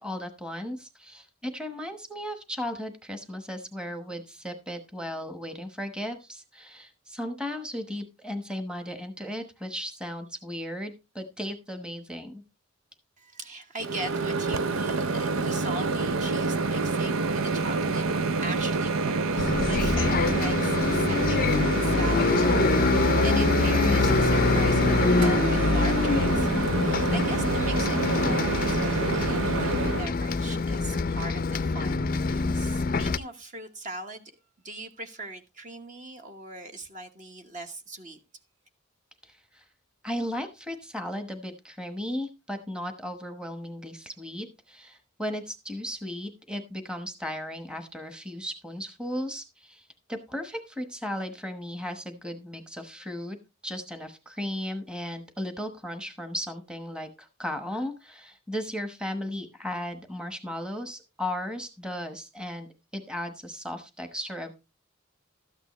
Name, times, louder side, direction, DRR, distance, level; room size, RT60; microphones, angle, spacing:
voice 1, 0.0-12.4 39.2-39.6 40.0-53.4 53.6-62.7 62.9-64.5, left 1 dB, 5° right, 1.1 m, -36 dB
voice 2, 13.2-18.0 18.4-34.3 34.6-38.2, right 2 dB, 40° right, 1.2 m, -40 dB
Microwave oven, 13.8-30.1, right 3 dB, 85° right, 0.6 m, -27 dB
Bus, 19.4-33.2, left 3 dB, 45° left, 0.5 m, -25 dB
13.0 x 9.0 x 3.1 m
head